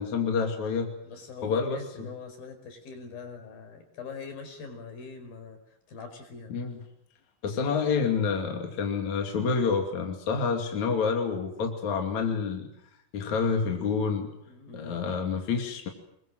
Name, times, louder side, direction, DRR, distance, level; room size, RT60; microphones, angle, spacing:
voice 1, 0.0-0.9 1.4-2.1 6.5-6.8 7.4-12.7 13.1-14.3 14.7-15.9, left 5 dB, 55° left, 3 dB, 3.8 m, -28 dB
voice 2, 1.0-6.6 14.5-15.3, left 5 dB, 75° left, 6 dB, 6.7 m, -43 dB
28.0 x 22.0 x 7.8 m, 0.78 s
omnidirectional pair, 4.2 m